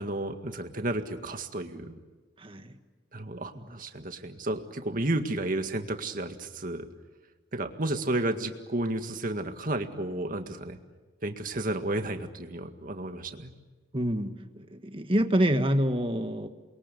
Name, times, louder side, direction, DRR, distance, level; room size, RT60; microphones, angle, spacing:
voice 1, 0.0-2.0 3.1-6.9 7.5-10.8 11.2-13.5, right 2 dB, 45° right, 6 dB, 1.9 m, -32 dB
voice 2, 2.4-2.7 3.7-3.8 13.9-16.5, equal, 30° right, 7 dB, 1.6 m, -27 dB
29.0 x 22.5 x 8.3 m, 1.3 s
head